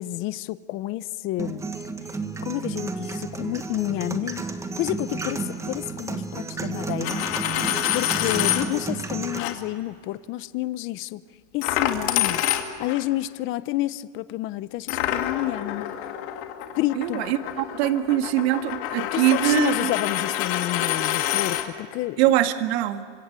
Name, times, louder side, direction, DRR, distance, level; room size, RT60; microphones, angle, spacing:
voice 1, 0.0-1.6 2.4-4.5 4.8-7.2 7.9-11.2 11.5-12.4 12.8-15.9 16.8-17.3 19.1-22.3, left 16 dB, 35° left, 16 dB, 0.8 m, -29 dB
sound 1, 1.4-9.4, right 4 dB, 10° right, 1.5 m, -32 dB
Coin (dropping), 6.9-8.7 9.3-9.5 11.6-13.0 14.9-21.7, left 12 dB, 60° left, 2.7 m, -27 dB
voice 2, 17.0-19.9 22.2-23.0, right 13 dB, 65° right, 7 dB, 2.0 m, -23 dB
28.0 x 25.5 x 8.2 m, 2.1 s
supercardioid pair, 150°, 35 cm